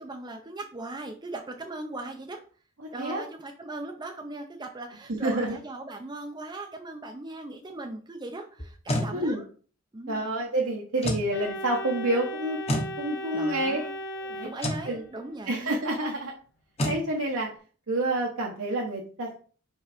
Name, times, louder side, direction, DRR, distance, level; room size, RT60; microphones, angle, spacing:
voice 1, 0.0-2.4 2.9-9.4 9.9-10.3 13.3-14.0 14.4-15.7, right 2 dB, 20° right, 3 dB, 0.6 m, -39 dB
voice 2, 5.2-5.5 9.1-9.4 10.1-12.6 13.0-13.8 14.2-14.5 14.8-15.0 15.5-16.3 16.8-17.5 17.9-19.4, right 1 dB, 65° right, -2 dB, 1.1 m, -28 dB
sound 1, 8.6-9.1 11.0-11.3 12.7-12.9 14.6-14.9 16.8-17.0, left 1 dB, 30° left, 1.1 m, -28 dB
Organ, 11.3-15.2, equal, 55° left, 1.0 m, -37 dB
5.5 x 3.9 x 5.0 m, 0.42 s
head